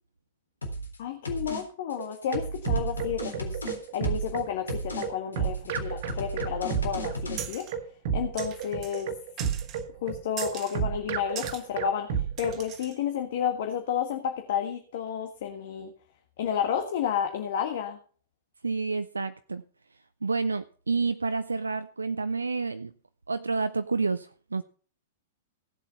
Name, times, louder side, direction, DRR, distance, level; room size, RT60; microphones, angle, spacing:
sound 1, 0.6-1.0 1.3-1.6 1.9-4.4 4.7-5.1 5.3-7.4, equal, 75° left, 3.6 m, -35 dB
voice 1, 1.0-3.6 3.9-7.7 8.1-9.1 10.0-15.9 16.4-18.0, left 8 dB, 50° left, 5 dB, 1.6 m, -31 dB
sound 2, 2.0-12.6, right 7 dB, 50° right, 1.7 m, -31 dB
sound 3, 7.4-7.8 8.4-9.1 9.4-9.8 10.4-10.8 11.4-11.6 12.4-13.0, right 9 dB, 30° right, 1.4 m, -40 dB
voice 2, 18.6-19.6 20.2-22.9 23.3-24.6, right 4 dB, 75° right, 11 dB, 0.6 m, -29 dB
17.0 x 7.5 x 5.6 m, 0.43 s
figure-of-eight pair, 100°, 0 cm